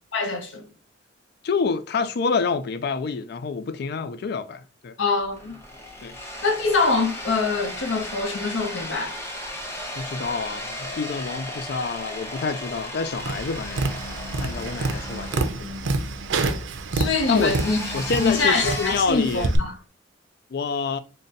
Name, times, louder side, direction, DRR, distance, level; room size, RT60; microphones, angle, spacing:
voice 1, 0.1-0.7 5.0-5.6 6.4-9.1 16.9-17.8 18.2-19.7, left 4 dB, 85° left, 0.7 m, -24 dB
voice 2, 1.4-5.0 6.0-6.2 10.0-13.9 14.4-15.9 17.3-17.6 17.9-19.5 20.5-21.0, left 5 dB, 60° left, 0.4 m, -27 dB
sound 1, 5.2-18.9, left 1 dB, 15° left, 0.7 m, -36 dB
Tap, 13.2-19.6, right 3 dB, 85° right, 0.5 m, -28 dB
3.8 x 2.2 x 3.9 m
head